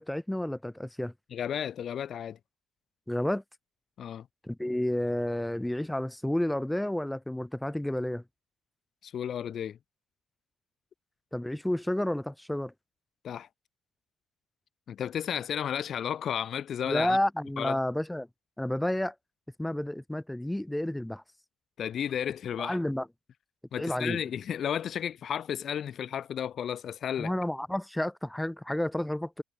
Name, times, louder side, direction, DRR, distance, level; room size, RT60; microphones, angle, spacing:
voice 1, 0.0-1.1 3.1-3.4 4.4-8.2 11.3-12.7 16.9-18.3 18.6-19.1 19.6-21.2 22.6-23.1 23.8-24.2 27.2-29.4, left 1 dB, 5° left, 6.3 m, -30 dB
voice 2, 1.3-2.4 4.0-4.3 9.0-9.8 13.2-13.5 14.9-17.2 17.6-17.8 21.8-22.8 23.7-27.3, left 9 dB, 60° left, 3.6 m, -33 dB
cardioid pair, 90°, 0 cm